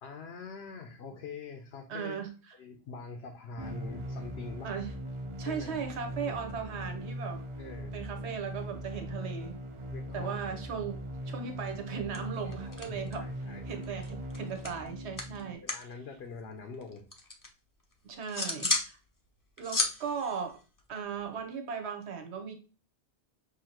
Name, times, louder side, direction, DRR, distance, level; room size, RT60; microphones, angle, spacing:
voice 1, 0.0-2.2 2.6-4.8 5.4-5.8 6.1-6.7 7.6-8.0 9.9-10.5 12.4-13.8 15.6-17.1, left 5 dB, 70° left, 0.9 m, -45 dB
voice 2, 1.9-2.3 4.6-4.9 5.4-7.4 7.9-9.6 10.1-13.3 13.7-15.9 18.0-19.0 19.6-20.6 20.9-22.5, right 6 dB, 80° right, 1.1 m, -37 dB
sound 1, 3.6-15.5, equal, 45° right, 0.4 m, -40 dB
sound 2, 11.7-11.9 12.1-13.4 13.6-15.9 16.2-17.5 17.9-18.9 19.3-21.4, left 2 dB, 25° left, 0.5 m, -35 dB
5.6 x 2.8 x 2.9 m
omnidirectional pair, 1.1 m